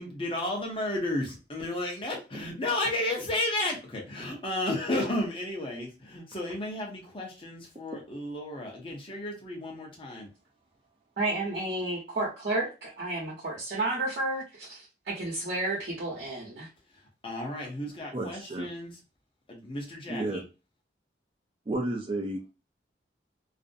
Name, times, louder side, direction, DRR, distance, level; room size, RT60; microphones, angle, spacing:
voice 1, 0.0-10.3 17.2-18.9 19.5-20.4, left 1 dB, 30° left, 0 dB, 0.7 m, -33 dB
voice 2, 11.2-16.7, right 2 dB, 70° right, -4 dB, 0.8 m, -31 dB
voice 3, 18.1-18.7 20.1-20.4 21.7-22.4, right 2 dB, 30° right, 1 dB, 0.4 m, -31 dB
2.5 x 2.0 x 2.5 m, 0.30 s
head